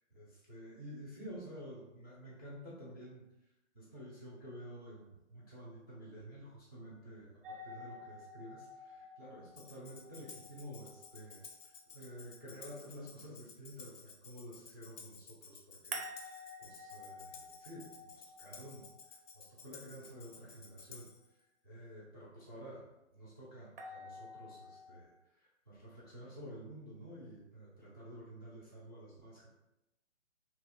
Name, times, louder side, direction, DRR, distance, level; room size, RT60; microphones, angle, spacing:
voice 1, 0.1-3.2 3.7-21.1 21.6-22.8 23.1-29.5, equal, 20° left, -7 dB, 0.3 m, -51 dB
sound 1, 7.4-12.4 15.9-20.0 23.8-25.0, equal, 50° right, 0.4 m, -50 dB
Tambourine, 9.6-21.3, left 5 dB, 85° left, 0.5 m, -55 dB
2.7 x 2.1 x 2.3 m, 0.92 s
figure-of-eight pair, 130°, 38 cm